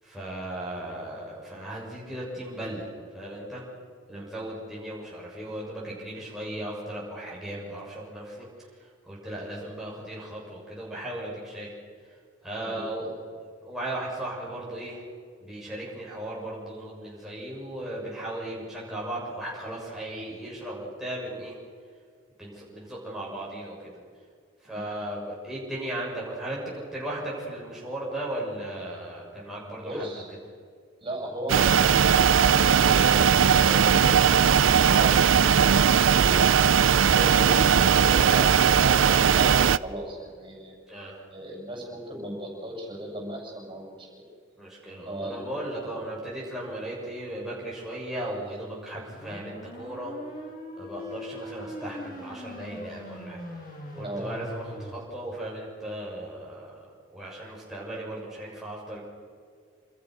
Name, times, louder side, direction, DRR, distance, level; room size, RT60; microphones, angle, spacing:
voice 1, 0.0-3.6 4.1-8.5 9.0-11.7 12.4-13.2 13.6-15.0 15.4-21.6 22.4-23.9 24.6-30.1 40.9-41.2 44.6-50.1 50.8-53.4 54.0-56.8 57.1-59.0, right 1 dB, ahead, -6 dB, 6.7 m, -36 dB
voice 2, 12.6-13.1 24.7-24.8 29.8-30.3 31.0-36.4 36.9-40.8 41.3-44.1 45.0-45.5 45.8-45.9 54.0-54.3, right 1 dB, 25° right, 0 dB, 7.4 m, -36 dB
sound 1, 31.5-39.8, right 7 dB, 75° right, 0.6 m, -19 dB
sound 2, 49.0-54.9, left 1 dB, 45° left, 7.0 m, -41 dB
28.0 x 27.5 x 6.4 m, 2.1 s
head